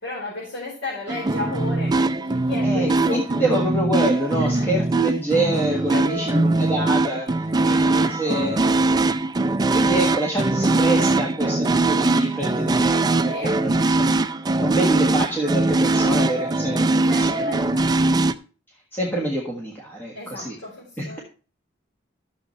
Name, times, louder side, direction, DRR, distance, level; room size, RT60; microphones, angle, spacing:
voice 1, 0.0-3.4 4.4-4.7 5.9-6.5 7.6-8.7 13.3-13.9 17.1-18.3 20.1-21.2, left 2 dB, 65° left, -8 dB, 4.5 m, -34 dB
sound 1, 1.1-18.3, right 2 dB, 20° right, 0.4 m, -21 dB
voice 2, 2.6-8.6 9.7-14.2 14.6-17.0 17.4-17.6 18.9-20.6 21.0-21.2, right 1 dB, 10° left, -2 dB, 1.5 m, -26 dB
12.5 x 7.0 x 3.2 m, 0.37 s
head